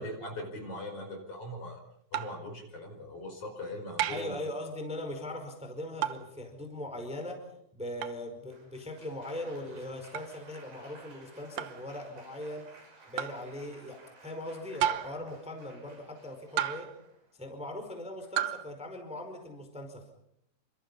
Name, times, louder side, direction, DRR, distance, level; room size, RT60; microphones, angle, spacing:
voice 1, 0.0-1.8 2.1-4.4, left 1 dB, 35° left, 4 dB, 5.7 m, -40 dB
sound 1, 2.1-2.5 4.0-4.4 6.0-6.3 8.0-8.2 10.1-10.3 11.6-11.8 13.2-13.4 14.8-15.3 16.6-17.0 18.4-18.7, right 11 dB, 70° right, 2.1 m, -32 dB
voice 2, 4.1-7.4 7.7-12.7 13.1-16.9 17.4-20.1, left 1 dB, ahead, 4 dB, 4.3 m, -40 dB
Applause, 8.5-17.4 18.2-18.6, right 3 dB, 85° right, 9.4 m, -56 dB
29.0 x 26.0 x 5.5 m, 0.74 s
omnidirectional pair, 4.9 m